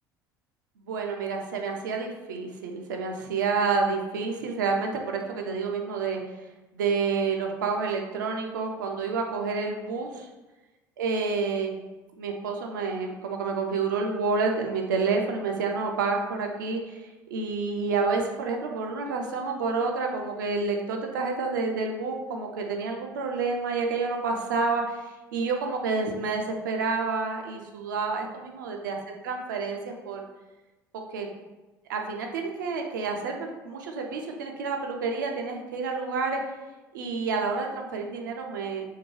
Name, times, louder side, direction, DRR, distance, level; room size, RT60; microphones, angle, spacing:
voice 1, 0.8-6.2 6.7-10.3 11.0-11.8 12.2-29.0 29.2-29.8 30.0-30.3 31.1-31.3 31.9-36.4 36.9-38.9, right 4 dB, 70° right, 2 dB, 0.4 m, -29 dB
2.7 x 2.1 x 3.0 m, 1.1 s
figure-of-eight pair, 60°, 11 cm